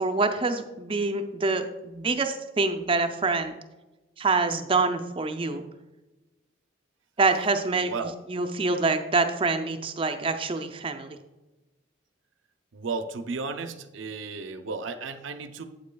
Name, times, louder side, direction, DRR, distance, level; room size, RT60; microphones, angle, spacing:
voice 1, 0.0-3.5 4.2-5.6 7.2-11.2, right 3 dB, 25° right, 7 dB, 0.4 m, -26 dB
voice 2, 7.8-8.1 12.7-15.7, right 4 dB, 75° right, 8 dB, 0.5 m, -34 dB
8.4 x 8.1 x 2.2 m, 1.1 s
head